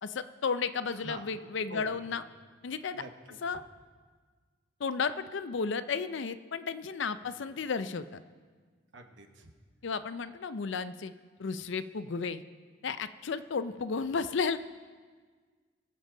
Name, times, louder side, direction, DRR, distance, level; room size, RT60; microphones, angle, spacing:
voice 1, 0.0-2.3 2.6-3.0 3.4-3.6 4.8-8.2 9.8-11.1 11.4-12.4 12.8-14.6, left 5 dB, 65° left, 12 dB, 0.5 m, -33 dB
voice 2, 1.7-2.2 2.9-3.4 8.9-9.5, right 2 dB, 65° right, 4 dB, 1.1 m, -46 dB
22.0 x 7.4 x 3.9 m, 1.5 s
head